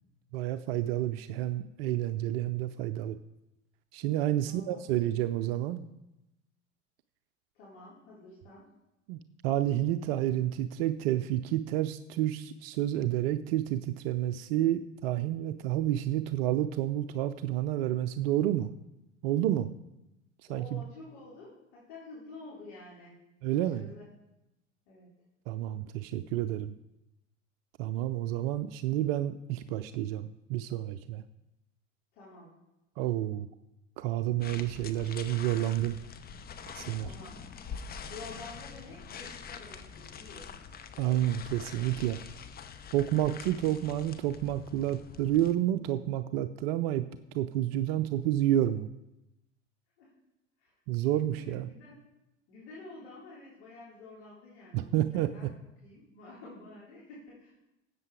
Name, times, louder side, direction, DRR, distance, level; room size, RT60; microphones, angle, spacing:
voice 1, 0.3-3.2 3.9-5.8 9.1-18.7 19.2-19.7 20.5-20.8 23.4-23.9 25.5-26.7 27.8-31.2 33.0-33.5 34.0-36.0 36.7-37.1 41.0-42.2 42.9-47.1 47.3-48.9 50.9-51.7 54.7-55.5, right 13 dB, 50° right, 11 dB, 0.6 m, -30 dB
voice 2, 4.4-5.0 5.3-5.5 7.5-8.7 20.5-23.2 23.5-24.1 24.9-25.1 32.1-32.5 37.0-37.4 38.1-41.1 50.0-50.1 50.6-50.7 51.3-52.0 52.5-55.5 55.8-57.6, left 2 dB, 60° left, -7 dB, 3.7 m, -50 dB
sound 1, 34.4-45.5, left 6 dB, 25° left, 0.8 m, -45 dB
13.0 x 8.3 x 4.8 m, 0.93 s
figure-of-eight pair, 70°, 37 cm